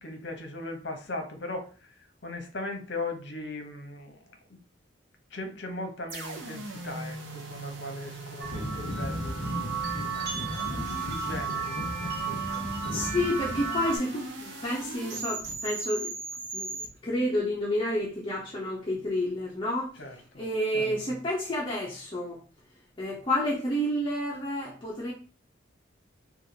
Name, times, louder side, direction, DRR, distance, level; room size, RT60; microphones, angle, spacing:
voice 1, 0.0-4.2 4.5-4.6 5.3-12.7 20.0-20.4, left 2 dB, 60° left, 5 dB, 0.9 m, -39 dB
sound 1, 6.1-16.9, right 2 dB, 75° right, 0.7 m, -39 dB
sound 2, 8.4-14.0, right 3 dB, 50° right, 1.2 m, -32 dB
voice 2, 12.9-16.1 16.5-20.0 20.4-22.4 23.0-25.1, left 1 dB, 25° left, -4 dB, 0.7 m, -30 dB
3.3 x 2.5 x 4.0 m, 0.38 s
head